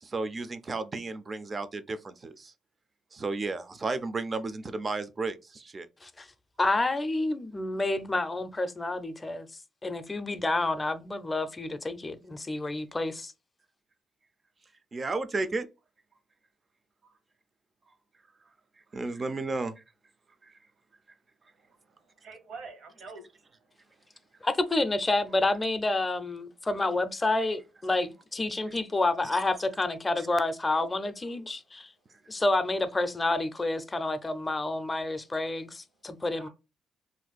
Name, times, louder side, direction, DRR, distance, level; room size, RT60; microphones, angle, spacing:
voice 1, 0.0-2.5 3.1-5.9 14.9-15.7 18.9-19.8, right 3 dB, 35° right, 0.4 m, -33 dB
voice 2, 6.6-9.5 9.8-13.3 24.4-31.9 32.3-36.5, left 2 dB, 20° left, 0.5 m, -29 dB
voice 3, 21.6-23.4 36.3-36.5, right 4 dB, 70° right, 1.0 m, -47 dB
2.5 x 2.2 x 4.0 m
cardioid pair, 90°, 0 cm